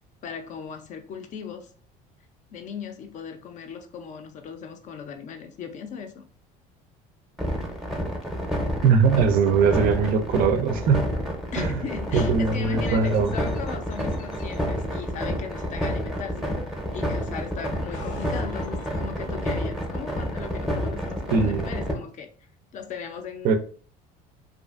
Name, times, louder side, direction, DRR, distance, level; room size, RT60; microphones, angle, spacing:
voice 1, 0.2-1.7 2.5-6.3 11.5-16.6 16.9-22.3 22.7-23.6, left 6 dB, 40° left, 0.4 m, -37 dB
sound 1, 7.4-21.9, equal, ahead, 0.6 m, -29 dB
voice 2, 8.8-11.1 11.6-11.8 12.1-13.3 21.3-21.7 23.4-23.6, right 5 dB, 50° right, 0.4 m, -21 dB
sound 2, 12.9-14.6 15.5-17.0 17.6-19.8, left 2 dB, 90° left, 0.6 m, -45 dB
2.5 x 2.4 x 2.3 m
cardioid pair, 130°, 18 cm